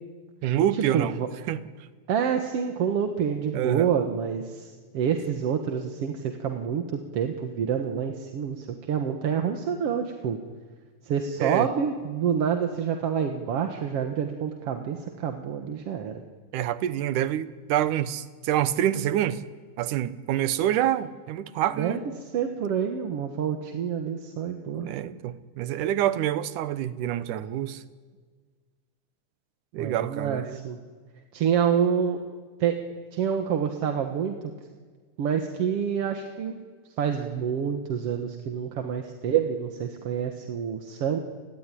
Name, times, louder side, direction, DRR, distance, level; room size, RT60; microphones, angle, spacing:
voice 1, 0.4-1.1 1.5-1.6 3.5-3.9 11.4-11.7 16.5-19.4 19.8-22.0 24.8-27.8 29.7-30.6, right 11 dB, 90° right, 2.5 m, -27 dB
voice 2, 0.9-1.3 2.1-10.4 11.0-16.2 21.8-22.0 22.3-24.9 29.8-30.8 31.3-32.2 32.6-32.8 33.1-34.4 35.2-36.6 37.0-41.2, right 7 dB, 55° right, 2.2 m, -27 dB
29.5 x 20.0 x 10.0 m
omnidirectional pair, 3.5 m